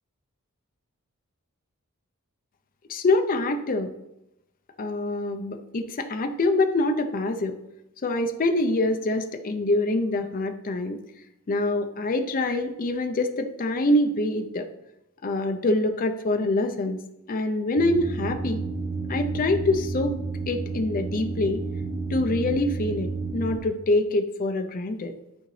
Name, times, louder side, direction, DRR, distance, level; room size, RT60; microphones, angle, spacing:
voice 1, 2.9-3.9 4.8-7.6 8.0-11.0 11.5-14.7 15.2-17.0 17.3-18.6 19.1-20.1 20.5-21.6 22.1-25.1, left 2 dB, 40° left, 6 dB, 0.5 m, -25 dB
sound 1, 17.8-23.6, right 3 dB, 25° right, 0.6 m, -31 dB
11.5 x 3.9 x 3.2 m, 0.88 s
head